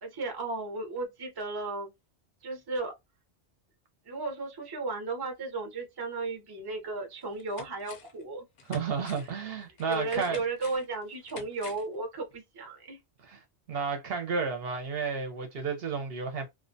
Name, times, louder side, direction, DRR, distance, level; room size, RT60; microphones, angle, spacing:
voice 1, 0.0-1.9 2.4-2.9 4.1-8.5 9.1-9.3 9.9-13.0, right 3 dB, 25° right, 0.6 m, -35 dB
sound 1, 6.6-6.7 7.1-8.2 8.6-12.0 12.3-12.4, left 5 dB, 60° left, 0.6 m, -49 dB
voice 2, 8.7-10.4 13.3-13.4 13.7-16.5, right 5 dB, 65° right, 0.8 m, -32 dB
2.4 x 2.1 x 2.5 m
omnidirectional pair, 1.2 m